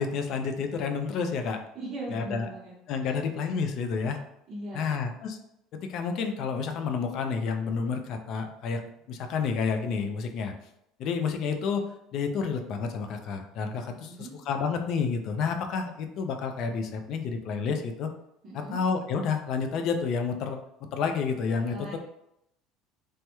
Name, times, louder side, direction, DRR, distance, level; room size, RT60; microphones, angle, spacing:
voice 1, 0.0-1.6 2.1-2.5 2.9-4.2 4.7-5.4 5.9-8.8 9.1-10.5 11.0-11.8 12.1-18.1 18.5-20.6 20.9-22.0, left 5 dB, 50° left, 5 dB, 0.4 m, -30 dB
voice 2, 1.7-3.2 4.5-5.0 13.9-14.3 18.4-18.8 21.7-22.0, right 1 dB, 40° right, -7 dB, 0.7 m, -40 dB
3.3 x 2.1 x 2.9 m, 0.81 s
cardioid pair, 140°, 0 cm